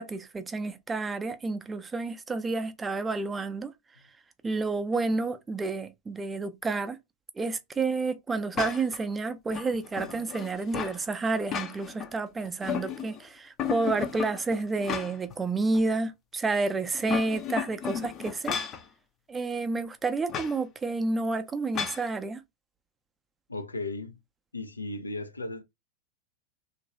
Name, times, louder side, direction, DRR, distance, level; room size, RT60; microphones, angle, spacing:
voice 1, 0.0-3.7 4.4-7.0 7.4-18.6 19.3-22.4, right 3 dB, 15° right, 0.5 m, -30 dB
sound 1, 8.6-9.0 9.5-11.0 11.4-12.1 12.4-13.2 13.6-15.4 15.7-15.8 16.9-18.8 20.3-20.6 21.8-22.1, left 8 dB, 30° left, 0.5 m, -34 dB
voice 2, 23.5-24.2 24.5-25.6, left 2 dB, 85° left, 0.5 m, -35 dB
3.0 x 2.6 x 2.7 m
figure-of-eight pair, 90°, 0 cm